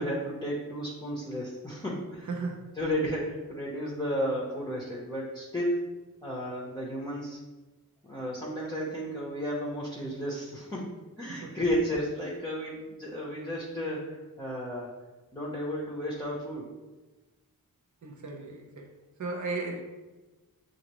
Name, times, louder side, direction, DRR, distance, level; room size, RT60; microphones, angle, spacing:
voice 1, 0.0-2.3 2.8-5.9 6.2-7.4 8.0-14.9 15.3-16.7, equal, 10° left, -6 dB, 0.8 m, -33 dB
voice 2, 2.3-2.7 11.3-11.6 18.0-18.9 19.2-19.8, right 3 dB, 55° right, 1 dB, 0.7 m, -35 dB
6.5 x 2.5 x 3.0 m, 1.2 s
wide cardioid pair, 80°, 35 cm